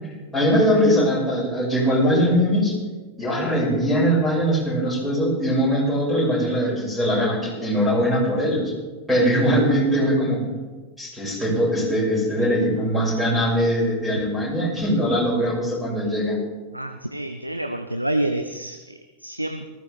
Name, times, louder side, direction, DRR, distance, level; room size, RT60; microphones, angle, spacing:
voice 1, 0.3-2.7 3.2-8.7 9.1-10.4 11.0-16.4, equal, ahead, -4 dB, 6.0 m, -21 dB
voice 2, 16.7-19.7, right 1 dB, 85° right, 8 dB, 0.6 m, -28 dB
19.0 x 14.5 x 3.4 m, 1.3 s
figure-of-eight pair, 90°, 0 cm